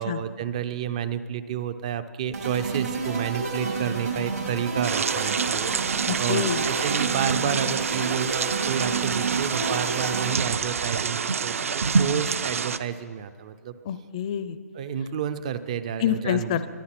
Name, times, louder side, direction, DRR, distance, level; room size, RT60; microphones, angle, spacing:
voice 1, 0.0-5.7 6.2-13.8 14.7-16.6, right 8 dB, 25° right, 13 dB, 0.5 m, -30 dB
sound 1, 2.3-10.7, right 4 dB, 80° right, 5.1 m, -30 dB
sound 2, 4.8-12.8, right 5 dB, 55° right, 0.7 m, -27 dB
voice 2, 6.1-6.6 13.9-14.6 16.0-16.7, left 9 dB, 25° left, 13 dB, 0.6 m, -27 dB
23.0 x 9.4 x 5.9 m, 2.1 s
hypercardioid pair, 170°, 9 cm